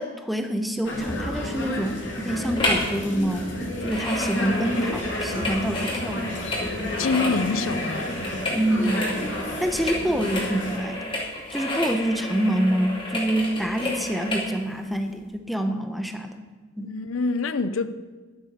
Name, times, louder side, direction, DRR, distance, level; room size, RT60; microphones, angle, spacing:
voice 1, 0.0-3.5 3.8-6.4 6.8-7.1 8.5-9.2 9.6-11.2 11.5-16.5 16.8-16.9, right 1 dB, ahead, 0.8 m, -26 dB
sound 1, 0.8-10.8, left 1 dB, 65° left, 2.7 m, -31 dB
sound 2, 2.6-2.9 3.2-14.5 15.0-15.1, left 1 dB, 25° left, 2.6 m, -31 dB
voice 2, 7.0-8.3 16.8-18.0, left 4 dB, 85° left, 0.6 m, -26 dB
11.5 x 8.9 x 6.7 m
head